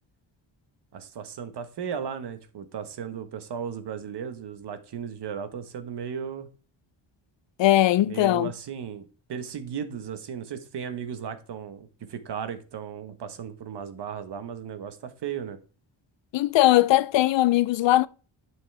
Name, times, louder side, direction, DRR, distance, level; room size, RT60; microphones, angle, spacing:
voice 1, 0.9-6.5 8.0-9.0 9.3-15.6, right 7 dB, 55° right, 1.3 m, -35 dB
voice 2, 7.6-8.5 16.3-18.1, left 15 dB, 65° left, 0.6 m, -20 dB
11.0 x 6.3 x 3.4 m
cardioid pair, 135°, 48 cm